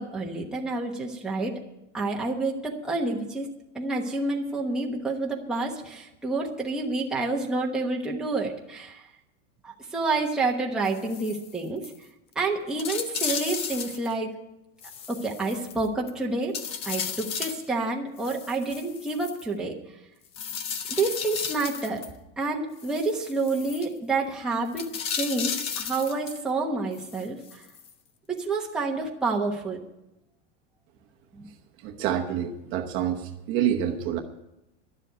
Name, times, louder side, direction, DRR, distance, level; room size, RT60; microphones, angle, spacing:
voice 1, 0.0-1.5 1.9-3.5 3.7-9.0 9.6-11.9 12.3-14.3 15.1-16.6 16.8-19.7 20.9-22.0 22.4-27.6 28.3-29.8 31.4-31.5, right 3 dB, ahead, -3 dB, 1.1 m, -29 dB
sound 1, 10.8-11.5 11.8-12.0 12.3-12.4 12.8-14.1 14.8-16.1 16.5-17.7 18.2-19.4 20.3-22.1 22.8-23.9 24.7-26.4 26.9-27.9 28.4-28.5, left 7 dB, 15° left, 0.3 m, -34 dB
voice 2, 31.8-34.2, right 10 dB, 35° right, 3 dB, 1.0 m, -27 dB
11.5 x 7.5 x 9.1 m, 0.90 s
supercardioid pair, 165°, 36 cm